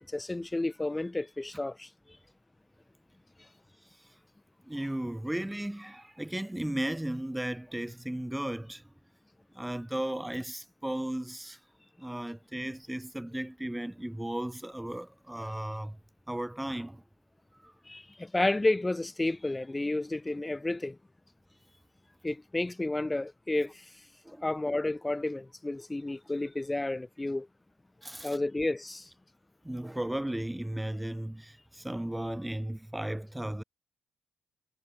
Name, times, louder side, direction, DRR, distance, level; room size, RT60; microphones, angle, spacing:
voice 1, 0.1-1.9 17.9-21.0 22.2-23.7 24.4-27.5 28.2-29.1, left 2 dB, 15° left, 1.4 m, -31 dB
voice 2, 4.7-8.8 9.5-11.6 12.0-16.0 16.3-17.0 17.6-17.7 24.2-24.5 28.0-28.4 29.6-33.6, right 1 dB, 5° right, 2.6 m, -35 dB
cardioid pair, 90°, 0 cm